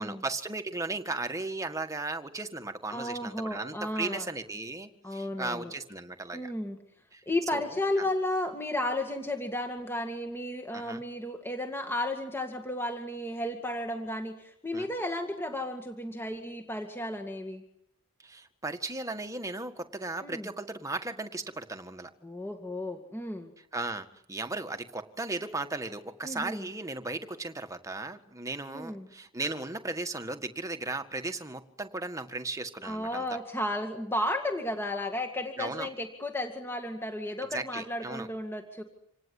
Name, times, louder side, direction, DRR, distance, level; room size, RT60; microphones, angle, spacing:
voice 1, 0.0-6.5 7.1-7.2 7.5-7.6 10.7-11.0 14.7-14.9 18.2-22.1 23.7-33.3 35.6-35.9 37.5-38.3, right 2 dB, 15° right, 7 dB, 1.7 m, -36 dB
voice 2, 2.9-4.3 5.0-5.7 6.3-6.8 7.3-17.6 20.2-20.5 22.2-23.5 26.2-26.7 28.7-29.1 32.8-38.8, left 1 dB, 10° left, 5 dB, 2.1 m, -33 dB
27.0 x 18.5 x 9.7 m, 0.72 s
head